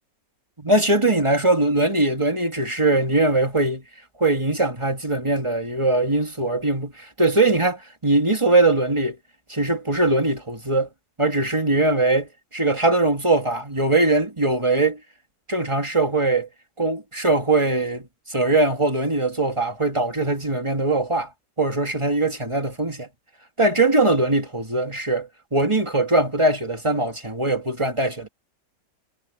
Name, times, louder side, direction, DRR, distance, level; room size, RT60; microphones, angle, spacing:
voice 1, 0.6-3.8 4.2-9.2 9.5-10.9 11.2-15.0 15.5-16.5 16.8-21.3 21.6-23.1 23.6-28.3, right 2 dB, 15° right, 2.4 m, -21 dB
omnidirectional pair, 1.8 m